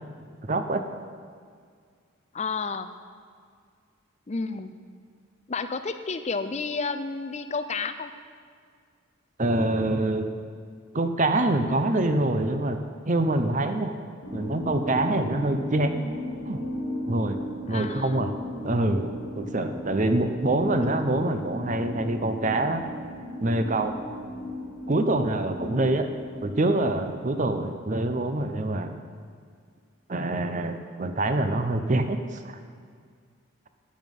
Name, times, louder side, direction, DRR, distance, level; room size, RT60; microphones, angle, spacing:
voice 1, 0.4-0.8 9.4-10.3 10.9-12.8 13.1-13.9 14.3-16.0 16.5-16.6 17.1-17.4 17.7-18.3 18.6-22.9 23.4-23.9 24.9-26.1 26.4-29.0 30.1-32.4, right 2 dB, 35° right, 8 dB, 0.7 m, -25 dB
voice 2, 2.3-2.9 4.3-4.7 5.5-8.1 17.7-18.3 25.5-26.0, left 4 dB, 30° left, 10 dB, 0.5 m, -31 dB
sound 1, 14.2-27.0, equal, 90° left, 1.7 m, -36 dB
11.5 x 9.3 x 5.4 m, 2.1 s
head